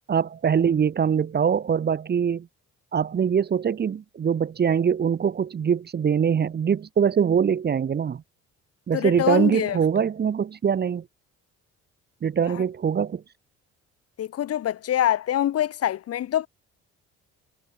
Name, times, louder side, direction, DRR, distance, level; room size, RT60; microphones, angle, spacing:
voice 1, 0.1-2.5 2.9-8.2 8.9-11.1 12.2-13.2, right 7 dB, 35° right, 0.6 m, -23 dB
voice 2, 8.9-9.8 12.5-12.6 14.2-16.5, left 11 dB, 55° left, 0.7 m, -25 dB
cardioid pair, 90°, 30 cm